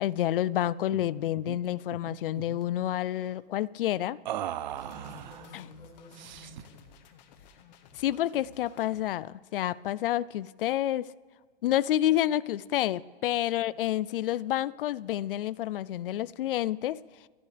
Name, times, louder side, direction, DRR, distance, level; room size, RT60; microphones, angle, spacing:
voice 1, 0.0-4.2 5.5-5.7 7.9-11.1 11.6-17.0, left 13 dB, 60° left, 20 dB, 0.5 m, -29 dB
sound 1, 0.9-1.1 1.4-1.6 1.9-2.7 4.2-5.5 6.1-6.7, right 12 dB, 45° right, 0.5 m, -38 dB
sound 2, 4.7-9.0, left 7 dB, 40° left, 1.4 m, -55 dB
voice 2, 4.8-6.9 13.5-13.8, left 2 dB, 10° left, -5 dB, 5.5 m, -51 dB
28.5 x 12.0 x 3.3 m, 1.5 s
hypercardioid pair, 155°, 32 cm